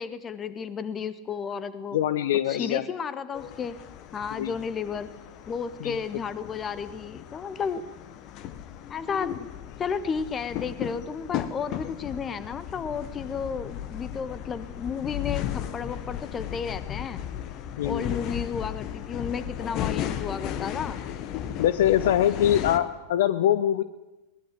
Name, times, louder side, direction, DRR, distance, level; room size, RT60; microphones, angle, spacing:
voice 1, 0.0-2.0 2.5-3.7 4.1-5.1 5.5-7.8 8.9-9.5 9.8-17.2 17.8-21.0, left 6 dB, 25° left, 14 dB, 1.5 m, -32 dB
voice 2, 1.9-2.8 4.3-4.5 5.8-6.0 17.8-18.2 21.6-23.8, left 11 dB, 55° left, 14 dB, 0.8 m, -23 dB
sound 1, 3.3-22.8, left 10 dB, 40° left, 1.4 m, -35 dB
22.0 x 19.0 x 7.8 m, 1.1 s
figure-of-eight pair, 90°, 0 cm